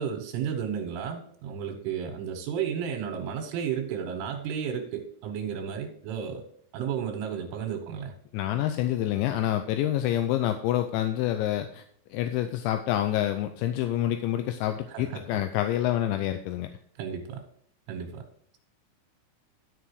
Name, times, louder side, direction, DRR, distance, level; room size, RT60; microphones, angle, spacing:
voice 1, 0.0-6.4 6.7-8.1 14.9-15.4 17.0-17.4 17.9-18.2, right 8 dB, 80° right, 1 dB, 3.7 m, -33 dB
voice 2, 8.3-11.8 12.1-16.7, left 12 dB, 80° left, 8 dB, 2.7 m, -27 dB
12.5 x 5.9 x 4.8 m, 0.65 s
omnidirectional pair, 5.8 m